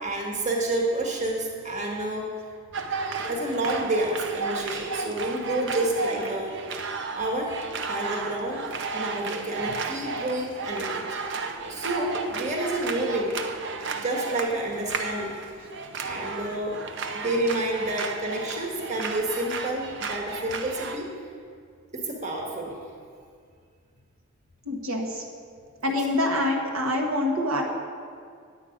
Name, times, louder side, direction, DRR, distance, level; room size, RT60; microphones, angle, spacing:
voice 1, 0.0-2.3 3.3-6.5 7.1-7.5 7.8-11.1 11.7-13.4 14.0-15.3 16.0-16.8 17.1-21.1 21.9-22.7, right 1 dB, 35° right, -1 dB, 1.5 m, -29 dB
sound 1, 2.7-21.0, right 4 dB, 55° right, 0.7 m, -33 dB
voice 2, 24.6-25.3 25.8-27.6, left 1 dB, 80° right, 0 dB, 1.4 m, -26 dB
10.5 x 8.3 x 5.1 m, 2.2 s
head